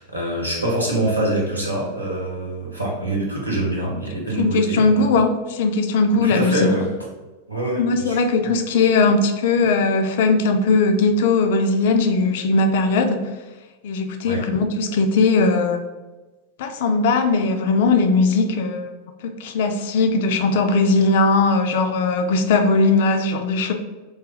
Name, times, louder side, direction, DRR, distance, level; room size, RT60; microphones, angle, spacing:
voice 1, 0.0-5.1 6.1-6.9 7.5-8.2 8.4-8.5 14.2-14.4, right 1 dB, 85° right, -3 dB, 0.9 m, -25 dB
voice 2, 4.4-6.7 7.8-13.3 13.8-15.8 16.6-18.9 19.2-23.7, left 3 dB, 55° left, 6 dB, 0.4 m, -19 dB
3.2 x 2.2 x 3.8 m, 1.2 s
figure-of-eight pair, 90°, 0 cm